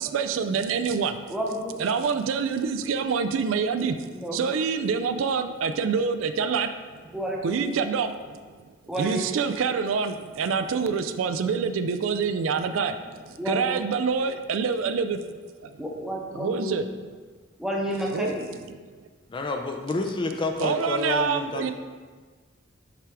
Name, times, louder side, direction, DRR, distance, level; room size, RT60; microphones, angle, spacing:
voice 1, 0.0-1.3 1.8-7.1 7.4-8.7 9.0-15.2 15.6-15.8 16.3-17.2 18.1-18.4 18.7-18.9 20.6-21.7, right 5 dB, 90° right, 9 dB, 0.4 m, -27 dB
voice 2, 1.3-1.8 4.1-4.4 7.1-7.6 8.9-9.2 13.4-13.8 15.8-16.8 17.6-18.4, equal, 5° right, -2 dB, 0.7 m, -30 dB
voice 3, 19.3-21.7, left 3 dB, 25° left, 4 dB, 0.4 m, -29 dB
5.8 x 4.7 x 3.4 m, 1.5 s
head